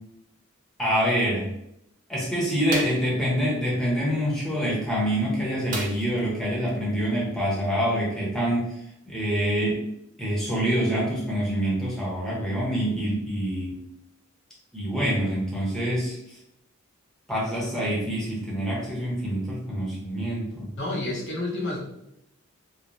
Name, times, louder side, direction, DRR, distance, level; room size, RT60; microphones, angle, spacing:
voice 1, 0.8-1.5 2.1-8.7 9.1-9.8 10.2-13.8 14.7-16.2 17.3-20.7, equal, ahead, -6 dB, 0.8 m, -26 dB
sound 1, 2.7-3.1 5.7-6.3 6.7-6.8 7.2-7.3, right 3 dB, 40° right, 0.4 m, -34 dB
voice 2, 20.8-21.8, left 2 dB, 55° left, -3 dB, 0.6 m, -29 dB
3.1 x 2.0 x 2.5 m, 0.79 s
head